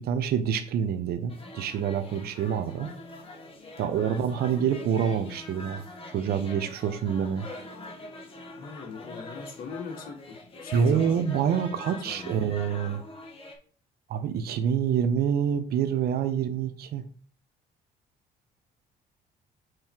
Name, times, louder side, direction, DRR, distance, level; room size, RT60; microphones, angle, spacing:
voice 1, 0.0-2.9 3.8-5.8 6.1-7.5 10.7-13.0 14.1-17.0, right 8 dB, 65° right, 10 dB, 0.9 m, -27 dB
sound 1, 1.3-13.6, left 2 dB, 35° left, 1.8 m, -44 dB
voice 2, 8.6-12.5, left 5 dB, 60° left, 1 dB, 1.9 m, -41 dB
7.8 x 3.2 x 4.5 m, 0.43 s
cardioid pair, 110°, 17 cm